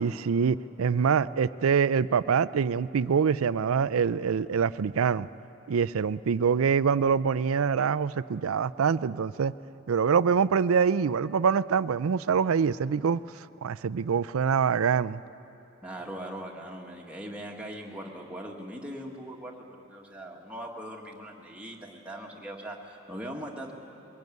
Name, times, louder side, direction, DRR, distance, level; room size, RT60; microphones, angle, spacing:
voice 1, 0.0-5.3 5.7-9.5 9.9-15.2, right 6 dB, 85° right, 17 dB, 0.4 m, -25 dB
voice 2, 15.8-23.7, right 1 dB, 5° right, -1 dB, 1.7 m, -40 dB
22.0 x 17.5 x 9.4 m, 2.9 s
head